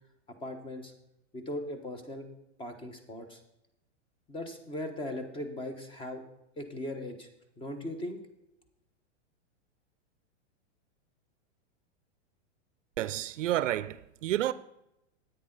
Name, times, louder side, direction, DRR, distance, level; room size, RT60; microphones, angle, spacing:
voice 1, 0.4-0.9 1.3-2.3 2.6-3.4 4.3-6.2 6.6-7.3 7.6-8.2, left 1 dB, 15° left, 1.2 m, -38 dB
voice 2, 13.0-14.5, right 13 dB, 90° right, 0.5 m, -30 dB
9.9 x 9.1 x 3.9 m
supercardioid pair, 140°, 36 cm